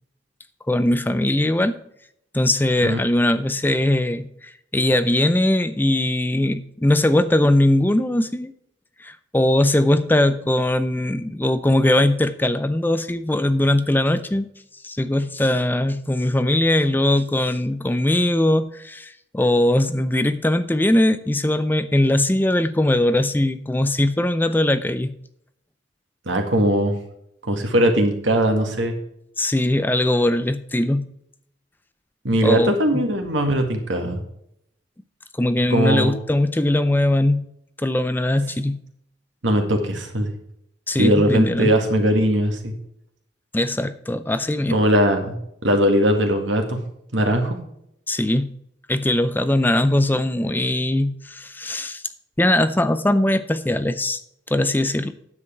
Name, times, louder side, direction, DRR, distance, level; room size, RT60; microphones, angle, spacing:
voice 1, 0.7-1.8 2.3-8.5 9.0-14.5 14.8-25.1 29.4-31.0 32.4-33.0 35.4-37.4 37.8-38.8 40.9-41.7 43.5-44.8 48.1-48.5 48.9-52.0 52.4-54.2 54.5-55.1, left 1 dB, 10° left, 12 dB, 0.5 m, -20 dB
voice 2, 26.3-26.9 27.4-28.9 32.2-34.2 35.7-36.1 39.4-40.3 41.0-42.7 44.7-45.4 45.6-46.8 47.1-47.6, equal, 90° right, 4 dB, 2.0 m, -20 dB
9.7 x 7.6 x 4.4 m, 0.74 s
head